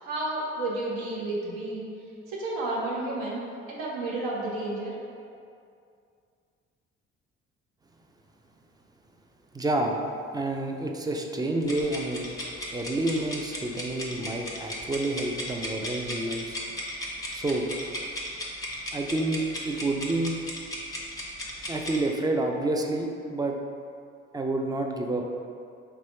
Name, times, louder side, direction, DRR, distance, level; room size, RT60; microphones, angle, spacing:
voice 1, 0.0-1.9 2.3-3.4 3.7-4.9, right 2 dB, 70° right, -4 dB, 0.9 m, -31 dB
voice 2, 9.5-10.0 10.3-12.3 12.7-16.6 17.3-17.7 18.9-20.4 21.7-23.6 24.3-25.4, right 2 dB, 10° right, 2 dB, 0.3 m, -29 dB
sound 1, 11.6-22.0, left 1 dB, 10° left, 0.8 m, -36 dB
4.2 x 3.0 x 2.9 m, 2.4 s
figure-of-eight pair, 45°, 35 cm